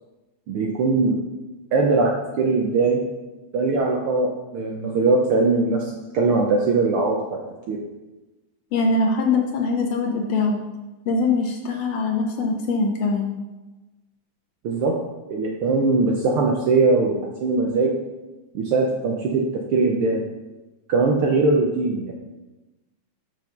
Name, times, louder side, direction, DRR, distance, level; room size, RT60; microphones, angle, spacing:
voice 1, 0.5-1.2 1.7-2.1 2.4-3.0 3.5-7.2 7.7-7.8 14.6-14.9 15.3-17.9 18.5-19.4 19.7-20.2 20.9-22.1, right 3 dB, 85° right, 0 dB, 1.2 m, -20 dB
voice 2, 8.7-10.6 11.1-13.3, left 3 dB, 70° left, 2 dB, 1.6 m, -22 dB
6.1 x 5.7 x 5.8 m, 1.1 s
omnidirectional pair, 3.4 m